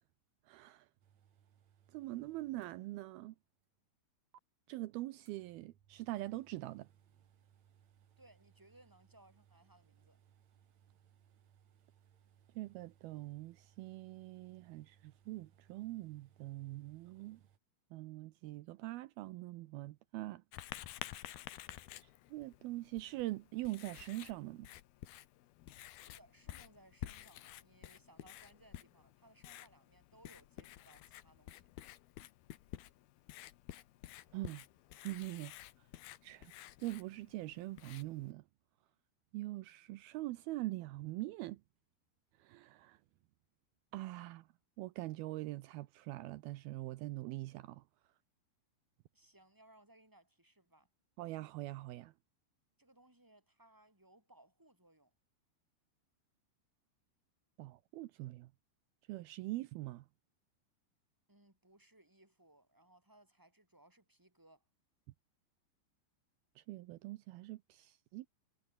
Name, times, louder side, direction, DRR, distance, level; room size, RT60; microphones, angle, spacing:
voice 1, 0.5-0.9 1.9-3.4 4.7-6.9 12.6-17.4 17.9-20.4 22.0-24.7 34.3-34.6 35.0-35.5 36.2-36.5 36.8-38.4 39.3-41.6 42.4-43.0 43.9-44.5 44.8-47.8 51.2-52.1 57.6-58.5 59.1-60.1 66.6-68.3, right 18 dB, 85° right, 2.2 m, -43 dB
sound 1, 1.0-3.3 3.6-3.7 4.3-4.4 5.2-17.6, right 9 dB, 50° right, 2.4 m, -68 dB
voice 2, 8.2-10.2 26.0-31.7 49.1-50.9 52.8-55.1 61.3-64.6, right 1 dB, 5° right, 5.5 m, -65 dB
Writing, 20.5-38.3, left 14 dB, 70° left, 2.7 m, -52 dB
omnidirectional pair, 5.3 m